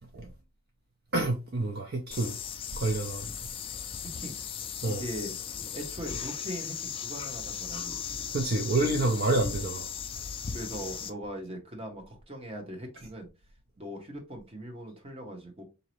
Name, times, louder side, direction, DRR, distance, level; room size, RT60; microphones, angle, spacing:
voice 1, 1.1-2.4 2.8-3.3 4.8-5.0 8.3-9.9, right 2 dB, 45° right, 0.5 m, -28 dB
sound 1, 2.1-11.1, left 7 dB, 25° left, 0.3 m, -37 dB
voice 2, 4.0-4.3 4.8-5.3 5.7-8.2 10.5-13.3 13.8-15.6, equal, 25° right, 1.0 m, -40 dB
4.0 x 2.8 x 3.0 m
head